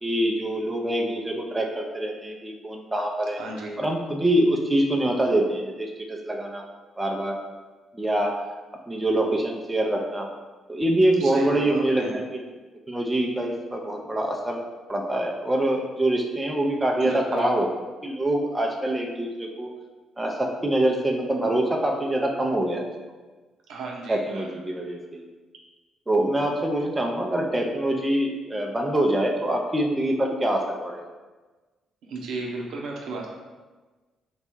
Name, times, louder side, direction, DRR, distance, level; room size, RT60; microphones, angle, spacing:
voice 1, 0.0-3.4 3.8-6.6 7.0-7.4 7.9-8.4 8.9-10.3 10.7-12.4 12.9-14.6 14.9-17.7 18.0-19.7 20.2-22.9 24.1-25.3 26.1-31.1, right 1 dB, 15° right, 0 dB, 0.5 m, -25 dB
voice 2, 3.3-3.8 11.2-12.1 17.0-17.5 23.7-24.5 24.9-25.0 32.1-33.3, right 3 dB, 80° right, -1 dB, 0.8 m, -34 dB
4.0 x 2.3 x 4.4 m, 1.3 s
cardioid pair, 90°, 0 cm